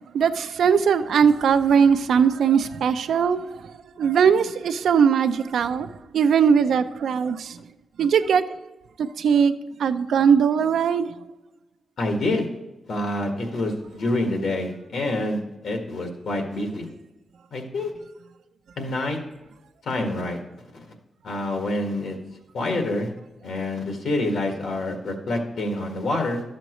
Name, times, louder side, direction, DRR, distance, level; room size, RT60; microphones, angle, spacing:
voice 1, 0.1-3.6 4.0-5.9 6.1-7.6 8.0-8.6 9.0-11.2, right 7 dB, 85° right, 0.6 m, -20 dB
voice 2, 12.0-12.5 12.9-16.9 17.5-17.9 18.8-19.2 19.8-20.4 21.2-22.2 22.5-23.1 23.4-26.4, left 2 dB, 75° left, 1.7 m, -27 dB
12.0 x 7.5 x 3.1 m
wide cardioid pair, 140°, 0 cm